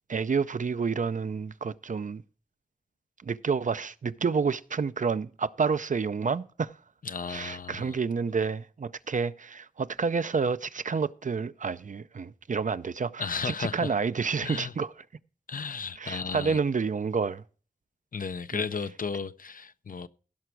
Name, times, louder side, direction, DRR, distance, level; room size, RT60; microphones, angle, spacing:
voice 1, 0.1-2.2 3.2-6.7 7.3-14.9 16.0-17.4 18.5-18.6, right 5 dB, 65° right, 0.5 m, -29 dB
voice 2, 7.0-8.0 13.2-14.0 14.4-14.7 15.5-16.6 18.1-20.1, left 5 dB, 75° left, 0.5 m, -34 dB
16.0 x 6.0 x 4.6 m
wide cardioid pair, 75°, 14 cm